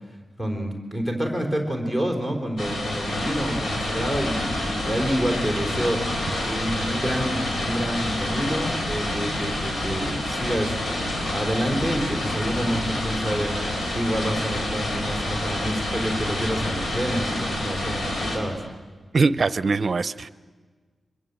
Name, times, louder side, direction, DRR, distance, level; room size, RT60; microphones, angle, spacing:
voice 1, 0.4-13.5 13.9-18.6, equal, 15° left, 2 dB, 3.8 m, -28 dB
sound 1, 2.6-18.4, left 1 dB, 75° left, 4.6 m, -28 dB
voice 2, 19.1-20.3, right 4 dB, 45° right, 15 dB, 0.7 m, -22 dB
24.5 x 22.0 x 8.2 m, 1.4 s
wide cardioid pair, 160°, 0 cm